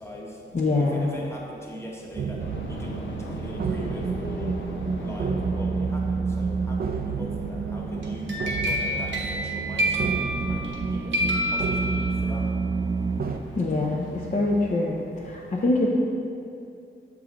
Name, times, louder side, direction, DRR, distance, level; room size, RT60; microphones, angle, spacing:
voice 1, 0.0-2.4 2.7-4.6 5.0-8.3 8.6-12.5, equal, 15° left, -3 dB, 1.1 m, -41 dB
voice 2, 0.5-1.1 13.5-15.0 15.2-15.9, left 2 dB, 40° left, -4 dB, 0.6 m, -24 dB
sound 1, 2.1-13.4, right 4 dB, 55° right, 0.4 m, -29 dB
sound 2, 2.4-14.7, left 2 dB, 80° left, 0.7 m, -43 dB
sound 3, 8.0-10.8 11.1-12.4, equal, 75° right, 1.0 m, -28 dB
7.0 x 4.8 x 3.8 m, 2.5 s
wide cardioid pair, 90°, 19 cm